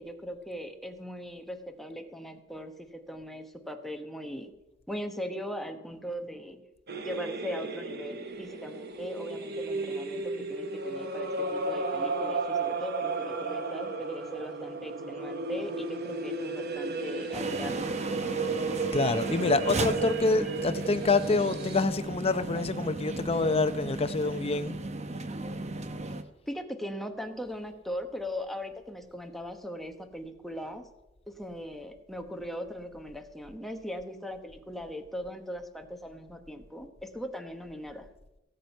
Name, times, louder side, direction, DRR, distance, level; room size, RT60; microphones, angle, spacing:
voice 1, 0.0-4.5 4.9-6.6 7.0-17.9 26.5-30.8 31.3-38.1, equal, ahead, 1.1 m, -39 dB
sound 1, 6.9-21.8, right 3 dB, 55° right, 1.2 m, -34 dB
sound 2, 17.3-26.2, right 2 dB, 35° right, 0.9 m, -35 dB
voice 2, 18.9-24.8, left 3 dB, 30° left, 0.7 m, -27 dB
18.0 x 7.7 x 5.4 m
head